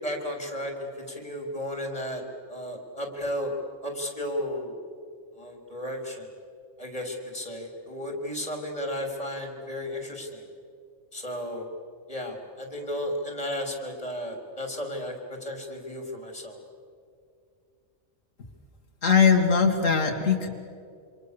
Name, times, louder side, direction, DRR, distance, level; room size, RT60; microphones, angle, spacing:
voice 1, 0.0-3.5 3.8-4.8 5.3-6.3 6.8-10.4 11.1-11.7 12.1-16.6, equal, 25° left, 2 dB, 3.9 m, -34 dB
voice 2, 19.0-20.5, left 6 dB, 80° left, 2 dB, 2.2 m, -20 dB
27.5 x 26.0 x 6.9 m, 2.3 s
omnidirectional pair, 1.3 m